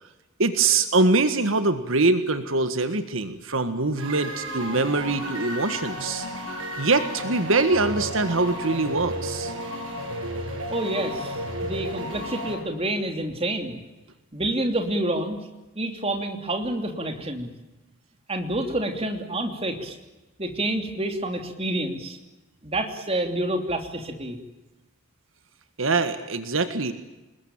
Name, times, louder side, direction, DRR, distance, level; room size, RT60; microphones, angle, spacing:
voice 1, 0.4-6.3 6.8-9.5 25.8-26.9, right 3 dB, 75° right, 9 dB, 1.6 m, -23 dB
sound 1, 4.0-12.6, equal, 90° right, 7.2 m, -33 dB
voice 2, 10.7-13.8 14.3-15.4 15.7-17.5 18.3-19.9 20.4-22.2 22.6-24.4, right 1 dB, 30° right, 5 dB, 3.1 m, -28 dB
28.0 x 20.5 x 9.0 m, 1.1 s
head